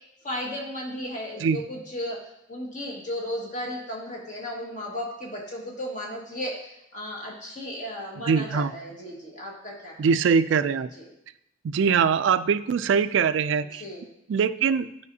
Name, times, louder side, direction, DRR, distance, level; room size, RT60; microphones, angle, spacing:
voice 1, 0.2-2.2 2.5-9.9 11.0-11.1 13.6-14.0, left 1 dB, 40° left, -2 dB, 1.7 m, -35 dB
voice 2, 8.3-8.7 10.0-10.9 11.6-13.8 14.3-14.9, right 6 dB, 75° right, 14 dB, 0.3 m, -22 dB
11.0 x 5.0 x 2.7 m, 0.81 s
head